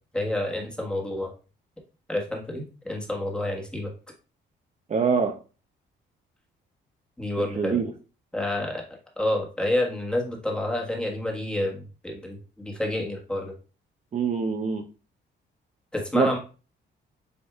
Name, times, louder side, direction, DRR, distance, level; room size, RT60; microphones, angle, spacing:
voice 1, 0.1-1.3 2.1-3.9 7.2-7.8 8.3-8.8 9.2-13.5 15.9-16.4, left 1 dB, 5° left, 0 dB, 1.4 m, -29 dB
voice 2, 4.9-5.3 7.5-7.9 14.1-14.8 16.1-16.4, right 5 dB, 35° right, 3 dB, 0.7 m, -24 dB
7.8 x 2.7 x 2.3 m, 0.34 s
cardioid pair, 90°, 20 cm